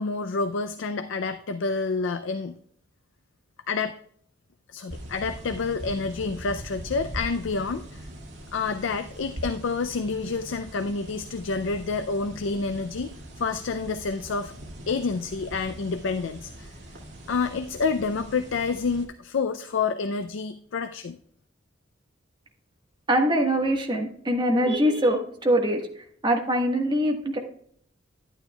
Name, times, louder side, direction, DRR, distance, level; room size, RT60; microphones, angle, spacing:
voice 1, 0.0-2.6 3.7-3.9 4.7-8.0 8.5-13.1 13.4-14.5 14.9-16.7 17.3-21.2, left 4 dB, 70° left, 9 dB, 0.5 m, -28 dB
sound 1, 4.9-19.1, right 1 dB, 65° right, 2.1 m, -41 dB
voice 2, 23.1-25.8 26.2-27.4, equal, 25° right, 2 dB, 1.4 m, -23 dB
11.0 x 9.2 x 2.3 m, 0.63 s
head